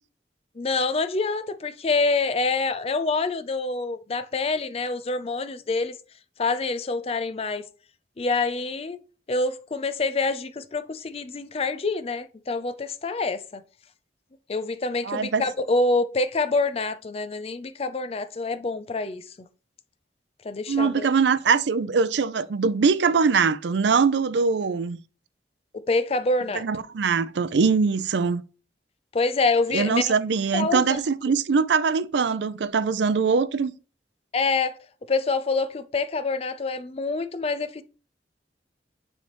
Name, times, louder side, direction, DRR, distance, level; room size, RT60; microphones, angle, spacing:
voice 1, 0.6-5.9 6.4-7.6 8.2-9.0 9.3-13.6 14.5-19.5 20.4-21.1 25.7-26.6 29.1-30.1 30.5-31.0 34.3-34.8 35.1-37.8, left 3 dB, 35° left, 0.4 m, -26 dB
voice 2, 15.0-15.5 20.7-25.0 26.5-28.4 29.7-33.7, right 5 dB, 75° right, 0.4 m, -22 dB
9.6 x 3.4 x 3.0 m
head